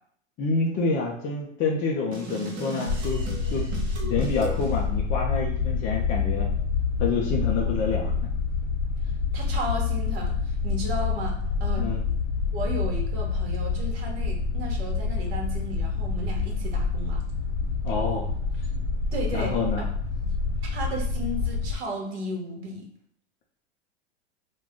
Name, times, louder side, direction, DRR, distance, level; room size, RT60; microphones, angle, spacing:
voice 1, 0.4-3.7 4.0-6.5 7.0-8.1 11.8-12.0 17.8-18.3 19.3-19.8, left 4 dB, 25° left, -2 dB, 0.4 m, -28 dB
sound 1, 2.1-4.8, right 2 dB, 35° right, 0.9 m, -37 dB
sound 2, 2.9-21.8, left 5 dB, 45° left, 0.8 m, -27 dB
voice 2, 9.3-11.9 12.5-17.2 19.1-19.6 20.6-22.9, right 1 dB, 60° right, 0 dB, 1.1 m, -34 dB
2.3 x 2.2 x 3.5 m, 0.65 s
hypercardioid pair, 110°, 35 cm